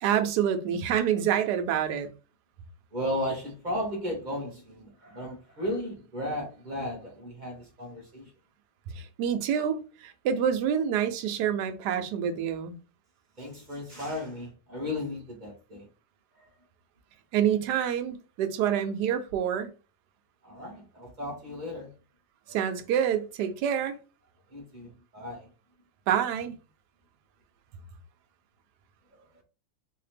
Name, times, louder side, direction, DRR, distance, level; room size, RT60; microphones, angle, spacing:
voice 1, 0.0-2.1 9.0-12.7 17.3-19.7 22.5-24.0 26.1-26.5, right 9 dB, 75° right, 1.1 m, -27 dB
voice 2, 2.9-8.3 13.4-15.9 16.4-16.5 20.4-21.9 22.5-22.6 24.5-25.5, left 1 dB, 30° right, 1.0 m, -35 dB
3.2 x 2.8 x 3.2 m
omnidirectional pair, 2.0 m